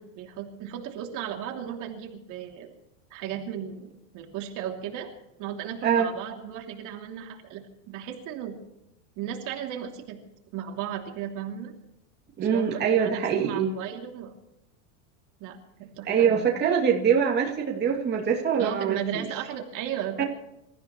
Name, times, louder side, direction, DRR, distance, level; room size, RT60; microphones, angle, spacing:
voice 1, 0.0-2.7 3.1-5.1 5.4-8.6 9.2-10.2 10.5-11.7 12.4-14.3 15.4-16.5 18.6-20.2, right 9 dB, 45° right, 2 dB, 3.0 m, -35 dB
voice 2, 12.4-13.7 16.1-19.0 20.2-20.3, right 7 dB, 25° right, -2 dB, 2.8 m, -23 dB
27.0 x 14.5 x 3.2 m, 0.87 s
supercardioid pair, 145°, 41 cm